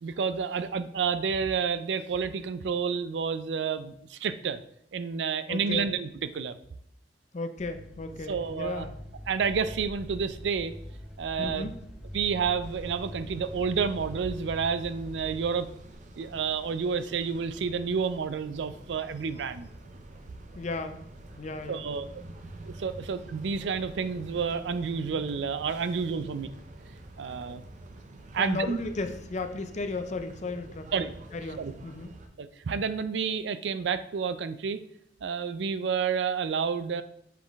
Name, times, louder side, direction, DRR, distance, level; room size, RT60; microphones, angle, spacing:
voice 1, 0.0-4.6 4.9-6.5 8.3-8.9 9.3-10.7 11.2-11.7 12.1-15.7 16.2-19.7 21.7-22.1 22.7-26.5 27.2-27.6 28.3-28.8 30.9-31.1 31.6-31.7 32.4-34.8 35.2-37.0, right 6 dB, 90° right, 12 dB, 0.4 m, -30 dB
voice 2, 5.5-5.9 7.3-9.0 11.4-11.7 20.5-21.0 21.4-21.9 26.3-26.4 27.2-27.3 28.4-32.1, left 3 dB, 40° left, 8 dB, 0.5 m, -35 dB
sound 1, 7.6-15.9, equal, 5° right, 1.2 m, -43 dB
sound 2, 12.6-32.3, right 1 dB, 45° right, 0.6 m, -47 dB
7.4 x 3.8 x 3.5 m, 0.72 s
head